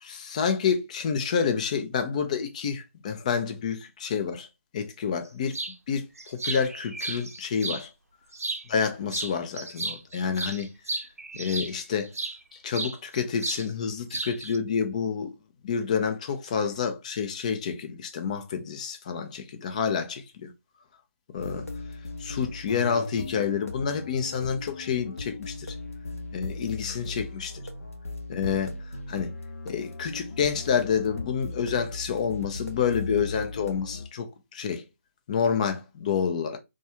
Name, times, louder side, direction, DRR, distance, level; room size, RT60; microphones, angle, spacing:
voice 1, 0.0-4.5 4.7-5.6 5.9-7.9 8.7-10.7 11.4-12.1 12.6-15.3 15.6-20.5 21.3-21.7 22.2-25.8 26.3-27.5 28.3-28.8 29.1-29.3 29.7-34.9 35.3-36.6, left 6 dB, 30° left, 0.4 m, -28 dB
sound 1, 5.5-5.8 6.2-7.8 8.3-8.9 9.1-12.4 12.7-13.7 13.9-14.6, right 3 dB, 80° right, 0.6 m, -34 dB
sound 2, 21.4-34.1, left 3 dB, 75° left, 0.7 m, -38 dB
2.3 x 2.3 x 2.8 m
figure-of-eight pair, 150°, 8 cm